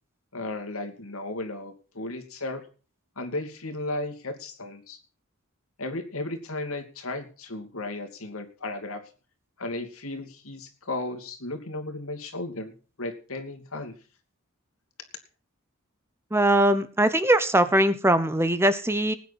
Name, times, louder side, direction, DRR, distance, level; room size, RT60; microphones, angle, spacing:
voice 1, 0.3-2.6 3.2-5.0 5.8-9.0 9.6-12.7 13.0-13.9, left 2 dB, 70° left, 5 dB, 2.7 m, -35 dB
voice 2, 16.3-19.1, right 1 dB, 10° right, 12 dB, 0.9 m, -21 dB
19.5 x 9.4 x 4.3 m, 0.37 s
head